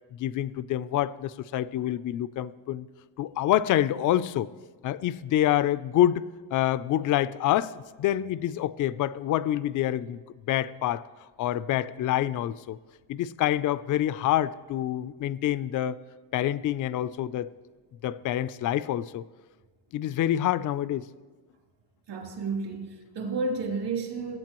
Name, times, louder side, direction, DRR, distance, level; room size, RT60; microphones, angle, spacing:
voice 1, 0.2-2.9 3.2-4.5 4.8-6.2 6.5-10.2 10.5-11.0 11.4-12.8 13.1-16.0 16.3-17.5 18.0-19.2 19.9-21.1, left 12 dB, 45° left, 16 dB, 0.4 m, -27 dB
voice 2, 22.1-24.4, right 3 dB, 55° right, 0 dB, 3.2 m, -31 dB
21.5 x 8.7 x 3.0 m, 1.4 s
cardioid pair, 95°, 48 cm